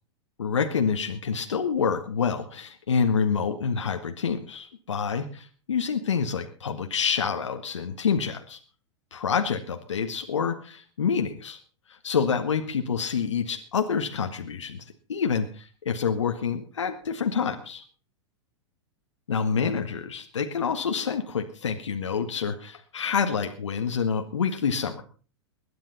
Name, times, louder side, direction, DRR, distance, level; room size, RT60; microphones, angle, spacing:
voice 1, 0.4-8.6 9.1-11.6 11.9-17.8 19.3-25.0, left 6 dB, 85° left, 5 dB, 1.7 m, -27 dB
21.0 x 10.5 x 4.2 m, 0.37 s
hypercardioid pair, 110°, 15 cm